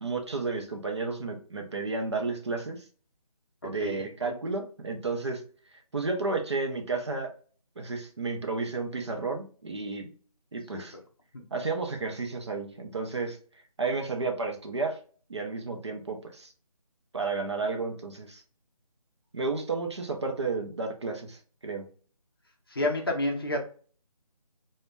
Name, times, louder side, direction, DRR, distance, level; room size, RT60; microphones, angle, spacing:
voice 1, 0.0-2.8 3.6-5.4 5.9-7.3 7.8-10.1 10.5-11.0 11.5-13.4 13.8-15.0 15.3-16.5 17.1-18.4 19.3-21.9, right 3 dB, 45° right, 3 dB, 0.5 m, -32 dB
voice 2, 3.6-4.0 22.7-23.6, left 2 dB, 40° left, 2 dB, 0.5 m, -29 dB
2.3 x 2.1 x 3.2 m, 0.41 s
figure-of-eight pair, 170°, 19 cm